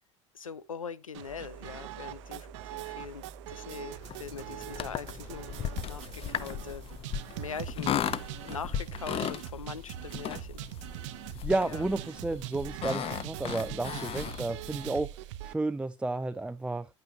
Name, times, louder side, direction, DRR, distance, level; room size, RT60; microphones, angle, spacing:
voice 1, 0.3-6.8 7.4-8.0 8.4-10.6 11.6-11.9, left 6 dB, 85° left, 0.8 m, -42 dB
sound 1, 1.1-15.5, right 14 dB, 65° right, 0.8 m, -42 dB
sound 2, 1.3-7.0, right 3 dB, 20° left, 2.2 m, -51 dB
sound 3, 4.0-14.9, left 9 dB, 35° left, 0.8 m, -37 dB
voice 2, 11.4-15.1 15.4-16.9, right 2 dB, 5° right, 0.5 m, -32 dB
11.0 x 9.0 x 2.8 m
figure-of-eight pair, 75°, 17 cm